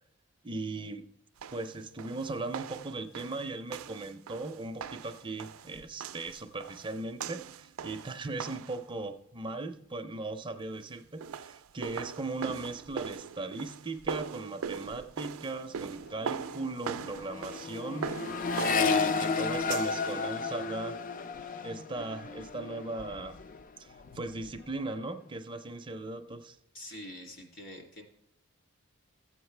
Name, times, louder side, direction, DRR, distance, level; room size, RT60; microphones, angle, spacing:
voice 1, 0.4-1.0 1.5-18.4 18.8-21.0 21.4-23.4 23.8-26.6, right 2 dB, 25° right, 7 dB, 0.5 m, -38 dB
sound 1, 1.4-8.8 11.0-20.2, right 6 dB, 85° right, 0.4 m, -41 dB
Accelerating revving vroom, 15.6-23.6 24.0-24.6, left 4 dB, 40° left, 0.4 m, -33 dB
voice 2, 26.7-28.0, left 1 dB, 60° left, 0 dB, 2.7 m, -45 dB
14.5 x 8.0 x 3.2 m, 0.75 s
head